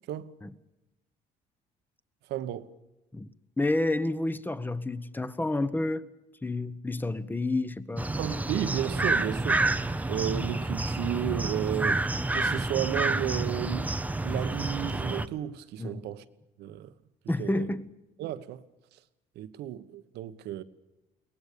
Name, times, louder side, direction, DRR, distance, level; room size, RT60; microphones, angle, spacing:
voice 1, 2.3-2.8 8.2-9.7 10.1-13.9 14.2-16.2 16.6-16.9 17.4-17.7 18.2-18.6 19.3-20.6, right 12 dB, 80° right, 1.3 m, -33 dB
voice 2, 3.6-6.0 6.4-8.1 15.8-16.1 17.3-17.9, left 2 dB, 10° left, 1.1 m, -29 dB
sound 1, 8.0-15.3, right 2 dB, 10° right, 0.8 m, -29 dB
22.5 x 19.0 x 6.9 m
cardioid pair, 110°, 17 cm